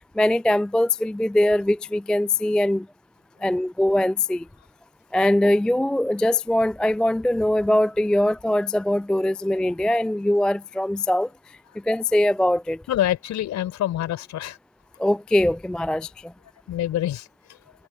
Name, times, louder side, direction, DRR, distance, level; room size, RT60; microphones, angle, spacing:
voice 1, 0.0-2.9 3.4-4.5 5.1-11.6 11.8-12.8 15.0-16.3, left 1 dB, ahead, 0.3 m, -22 dB
voice 2, 12.9-14.6 16.7-17.6, left 12 dB, 45° left, 3.8 m, -26 dB
figure-of-eight pair, 70°, 40 cm